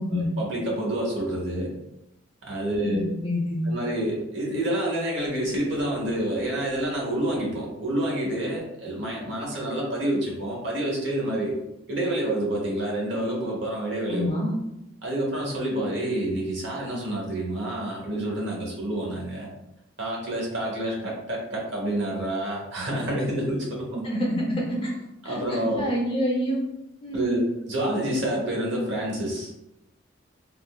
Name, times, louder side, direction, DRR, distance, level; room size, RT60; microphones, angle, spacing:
voice 1, 0.1-1.7 2.4-3.0 3.7-11.5 11.9-14.3 15.0-19.5 20.0-23.9 25.2-25.9 27.1-29.5, right 1 dB, 65° right, -3 dB, 1.0 m, -28 dB
voice 2, 2.7-3.6 14.1-14.5 23.9-24.9 25.2-26.6 27.0-27.4, equal, 30° left, -3 dB, 0.7 m, -27 dB
3.6 x 2.3 x 2.3 m, 0.88 s
head